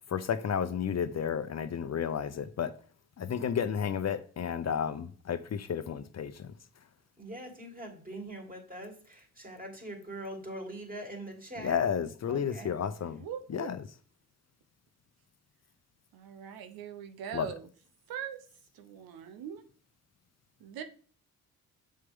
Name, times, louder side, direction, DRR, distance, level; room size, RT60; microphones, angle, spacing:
voice 1, 0.1-2.7 3.2-6.5 11.6-13.2 13.5-13.8 17.3-17.5, left 8 dB, 50° left, 0.7 m, -32 dB
voice 2, 7.2-11.8 12.3-12.8, right 1 dB, 25° right, 3.1 m, -43 dB
voice 3, 13.2-13.8 16.1-17.7 18.1-18.4 18.7-19.6 20.6-20.8, right 9 dB, 90° right, 0.8 m, -41 dB
6.7 x 6.6 x 3.6 m
supercardioid pair, 65°, 35 cm